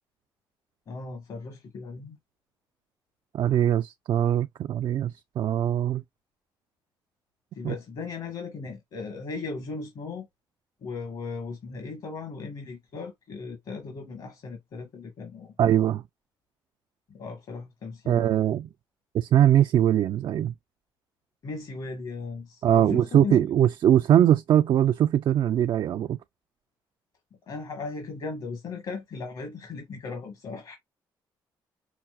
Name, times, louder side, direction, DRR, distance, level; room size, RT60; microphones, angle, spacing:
voice 1, 0.9-2.2 7.5-10.3 10.8-15.5 17.1-18.4 21.4-23.4 27.5-30.8, left 4 dB, 60° left, 1.5 m, -37 dB
voice 2, 3.3-6.0 7.6-7.7 15.6-16.0 18.1-18.7 19.1-20.5 22.6-26.2, right 11 dB, 60° right, 0.4 m, -22 dB
5.7 x 2.0 x 2.4 m
supercardioid pair, 75°, 9 cm